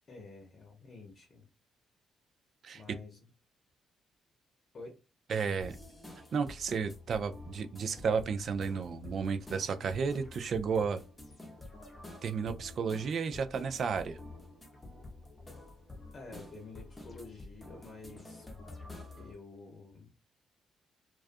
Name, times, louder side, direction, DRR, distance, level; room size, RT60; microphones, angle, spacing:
voice 1, 0.1-1.4 2.7-3.3 4.7-5.0 16.1-18.5 19.2-20.1, left 3 dB, 45° left, 0.8 m, -49 dB
voice 2, 5.3-5.8 6.3-11.0 12.2-14.2, right 5 dB, 55° right, 0.3 m, -32 dB
sound 1, 5.6-19.3, left 2 dB, 15° left, 0.8 m, -49 dB
2.3 x 2.3 x 2.5 m
cardioid pair, 90°, 0 cm